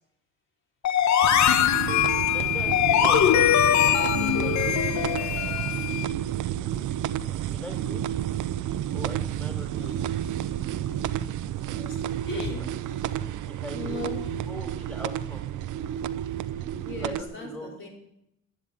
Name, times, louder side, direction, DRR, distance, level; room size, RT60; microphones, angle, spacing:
sound 1, 0.8-5.7, left 9 dB, 65° left, 1.1 m, -22 dB
sound 2, 1.2-17.2, right 11 dB, 80° right, 0.8 m, -31 dB
sound 3, 1.8-6.1, left 16 dB, 85° left, 1.1 m, -28 dB
voice 1, 2.2-4.6 7.5-8.2 8.9-10.1 13.5-14.0 14.5-15.4 17.0-17.9, left 1 dB, 5° left, 3 dB, 3.9 m, -41 dB
voice 2, 9.7-13.2 13.7-14.5 16.2-16.3 16.8-17.9, left 2 dB, 40° left, -1 dB, 5.0 m, -40 dB
11.0 x 10.5 x 9.9 m, 0.81 s
cardioid pair, 90°, 30 cm